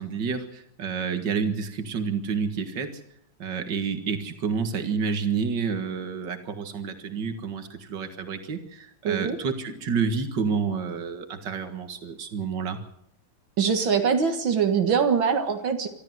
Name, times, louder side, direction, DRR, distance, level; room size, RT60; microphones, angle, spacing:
voice 1, 0.0-3.0 3.4-12.8, right 5 dB, 65° right, 7 dB, 2.5 m, -29 dB
voice 2, 9.0-9.4 13.6-15.9, right 6 dB, 85° right, 5 dB, 2.4 m, -23 dB
25.0 x 13.5 x 7.9 m, 0.69 s
omnidirectional pair, 2.1 m